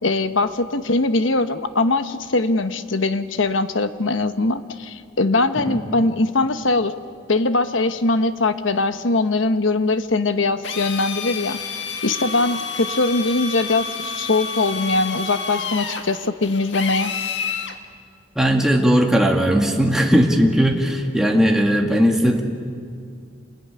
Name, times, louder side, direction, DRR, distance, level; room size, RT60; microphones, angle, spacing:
voice 1, 0.0-6.9 7.3-11.6 12.0-17.1, left 2 dB, 90° left, 10 dB, 1.2 m, -21 dB
Drill, 10.6-17.8, left 5 dB, 70° left, 1.8 m, -29 dB
voice 2, 18.4-22.4, equal, 5° right, 0 dB, 1.9 m, -18 dB
28.0 x 20.5 x 9.8 m, 2.2 s
head